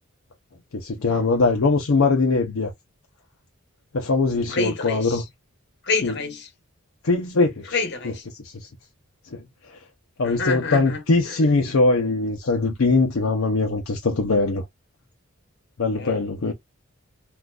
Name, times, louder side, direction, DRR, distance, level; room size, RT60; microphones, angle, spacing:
voice 1, 0.7-2.7 3.9-5.2 6.0-6.1 7.0-7.7 8.4-8.7 9.3-9.8 10.2-14.6 15.8-16.5, left 3 dB, 70° left, 0.6 m, -21 dB
voice 2, 4.5-5.2 5.8-6.5 7.7-8.3 10.2-11.5 16.0-16.2, left 3 dB, 55° left, 1.2 m, -28 dB
3.7 x 2.4 x 2.3 m
head